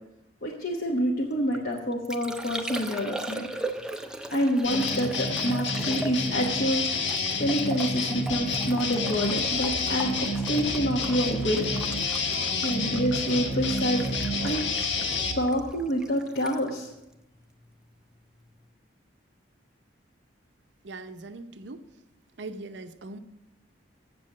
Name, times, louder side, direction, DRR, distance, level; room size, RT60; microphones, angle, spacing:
voice 1, 0.4-3.5 4.3-6.8 7.4-10.1 10.5-11.7 12.6-14.1 14.4-14.6 15.3-16.9, equal, 55° left, -2 dB, 1.1 m, -27 dB
Liquid, 1.3-17.9 18.2-18.7, right 1 dB, 5° right, 0.4 m, -40 dB
sound 1, 4.6-15.3, left 3 dB, 75° left, 1.3 m, -29 dB
sound 2, 8.3-15.6, right 2 dB, 30° right, 0.8 m, -41 dB
voice 2, 20.8-21.9 22.4-23.2, right 2 dB, 70° right, 10 dB, 0.6 m, -40 dB
7.8 x 7.5 x 7.3 m, 0.90 s
head